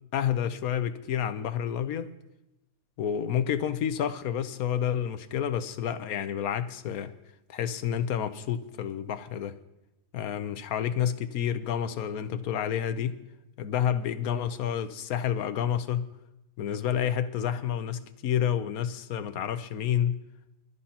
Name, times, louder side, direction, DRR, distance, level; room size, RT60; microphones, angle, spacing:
voice 1, 0.1-2.1 3.0-7.1 7.5-9.6 10.1-13.2 13.6-16.0 16.6-20.2, left 9 dB, 85° left, 1.3 m, -29 dB
26.5 x 12.5 x 2.9 m
omnidirectional pair, 1.5 m